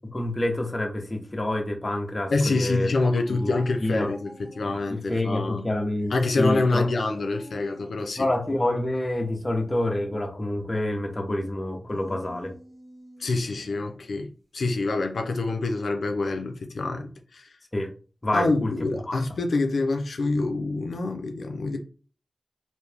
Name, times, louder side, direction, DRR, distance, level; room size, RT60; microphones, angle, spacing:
voice 1, 0.0-2.9 3.4-3.5 3.8-4.1 4.6-6.9 8.2-12.5 17.7-17.9 18.2-18.7 19.1-19.3, left 1 dB, 30° left, 0.8 m, -27 dB
voice 2, 2.3-5.6 6.1-8.3 13.2-17.5 18.3-21.8, left 3 dB, 90° left, 0.5 m, -26 dB
sound 1, 3.0-5.0 6.0-7.9 11.8-14.0, equal, 50° right, 1.4 m, -47 dB
3.2 x 2.6 x 3.4 m
wide cardioid pair, 70°, 0 cm